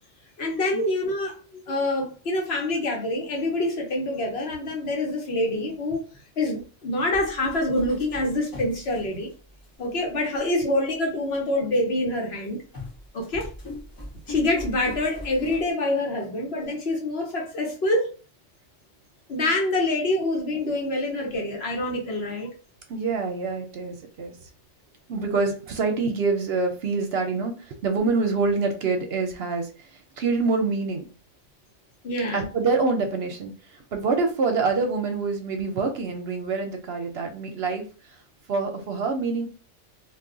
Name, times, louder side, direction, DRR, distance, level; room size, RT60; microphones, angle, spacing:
voice 1, 0.4-6.0 6.4-9.3 9.8-12.6 13.1-13.5 14.3-18.1 19.3-22.5 32.0-32.5, left 1 dB, 60° left, 1 dB, 1.0 m, -26 dB
sound 1, 7.1-9.7 10.4-10.5 12.7-15.7, left 2 dB, 20° left, 0.8 m, -39 dB
voice 2, 22.9-24.4 25.1-31.1 32.3-37.9 38.5-39.5, right 4 dB, 65° right, 5 dB, 0.8 m, -26 dB
2.3 x 2.3 x 3.7 m, 0.35 s
omnidirectional pair, 1.3 m